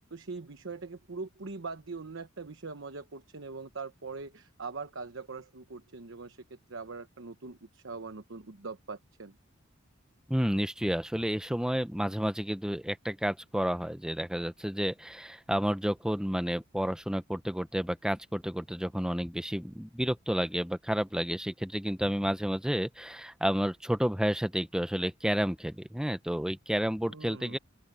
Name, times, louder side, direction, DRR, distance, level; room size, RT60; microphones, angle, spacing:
voice 1, 0.1-9.4 27.1-27.6, right 4 dB, 65° right, 1.1 m, -42 dB
voice 2, 10.3-27.6, equal, 5° right, 1.0 m, -31 dB
open air
head